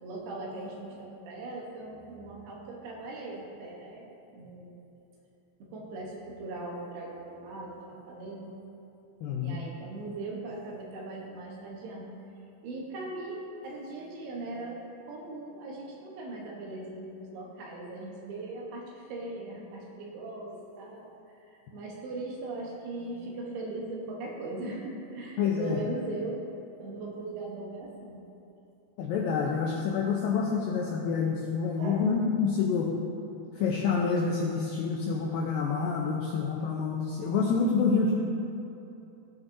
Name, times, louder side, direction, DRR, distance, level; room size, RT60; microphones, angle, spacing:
voice 1, 0.0-4.0 4.3-4.9 5.6-8.5 9.4-12.1 12.6-14.8 15.1-21.1 21.4-26.4 26.8-28.2 31.8-32.1, right 2 dB, 75° right, -2 dB, 2.9 m, -39 dB
voice 2, 9.2-9.6 25.4-25.8 29.0-32.9 33.6-38.1, left 5 dB, 85° left, -1 dB, 2.0 m, -27 dB
16.0 x 5.9 x 2.7 m, 2.9 s
omnidirectional pair, 4.8 m